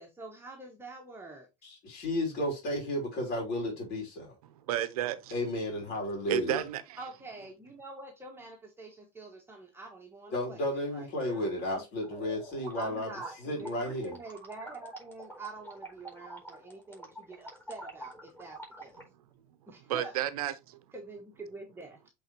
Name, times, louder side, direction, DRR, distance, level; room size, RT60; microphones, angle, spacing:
voice 1, 0.0-1.5 7.0-11.8 12.8-19.0 19.7-20.2 20.9-22.0, right 3 dB, 10° right, 1.4 m, -46 dB
voice 2, 1.6-4.3 5.3-6.6 10.3-13.1 13.4-14.2, left 1 dB, 50° left, 3.3 m, -33 dB
voice 3, 4.4-5.3 6.3-7.0 19.9-20.8, right 12 dB, 80° right, 0.9 m, -32 dB
sound 1, 12.0-19.0, right 1 dB, 10° left, 4.5 m, -47 dB
7.9 x 4.0 x 3.0 m
hypercardioid pair, 95°, 19 cm